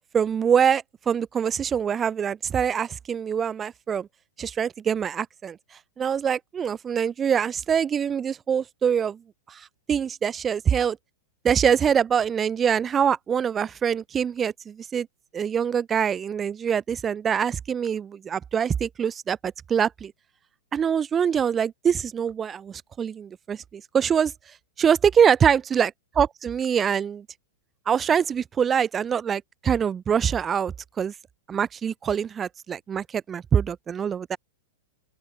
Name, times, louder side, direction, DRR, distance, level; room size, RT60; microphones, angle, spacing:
voice 1, 0.1-4.1 4.4-5.6 6.0-9.2 9.5-10.9 11.4-15.1 15.3-20.1 20.7-24.3 24.8-25.9 26.2-27.2 27.9-31.1 31.5-34.4, right 7 dB, 10° right, 0.3 m, -24 dB
open air
supercardioid pair, 175°, 0 cm